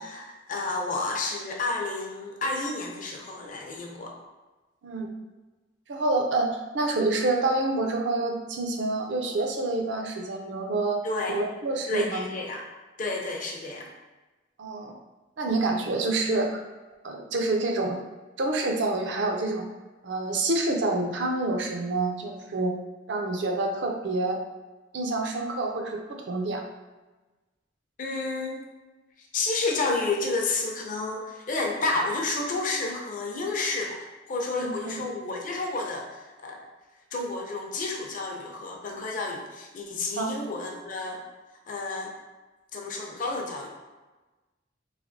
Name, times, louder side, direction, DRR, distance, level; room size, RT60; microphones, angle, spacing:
voice 1, 0.0-4.1 11.0-11.4 11.9-12.6 13.0-13.9 28.0-28.6 29.2-36.6 37.1-41.2 41.7-42.1 42.7-43.7, left 3 dB, 45° left, 0 dB, 0.5 m, -31 dB
voice 2, 5.9-11.0 11.3-12.2 14.6-14.9 15.4-16.6 17.0-18.0 18.4-19.7 20.0-22.7 23.1-24.4 24.9-26.6 34.5-35.1 40.2-40.3, right 2 dB, 70° right, 2 dB, 0.5 m, -27 dB
3.2 x 3.1 x 2.6 m, 1.2 s
head